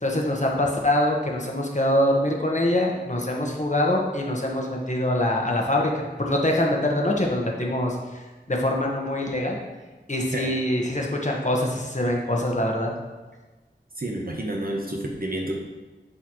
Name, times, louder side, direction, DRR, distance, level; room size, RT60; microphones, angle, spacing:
voice 1, 0.0-9.6 10.1-12.9, left 1 dB, 40° left, -1 dB, 1.3 m, -24 dB
voice 2, 14.0-15.5, right 1 dB, 55° right, -1 dB, 1.0 m, -29 dB
11.0 x 4.1 x 3.1 m, 1.2 s
wide cardioid pair, 45°, 18 cm